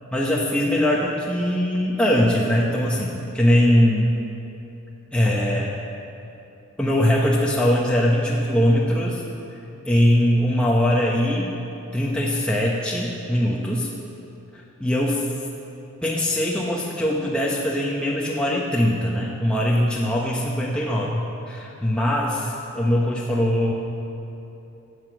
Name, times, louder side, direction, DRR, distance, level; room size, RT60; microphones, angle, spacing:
voice 1, 0.1-4.2 5.1-5.7 6.8-9.2 9.9-11.5 11.9-13.9 14.5-15.3 16.0-23.7, equal, 5° left, -4 dB, 0.9 m, -21 dB
12.0 x 8.2 x 7.7 m, 2.9 s
head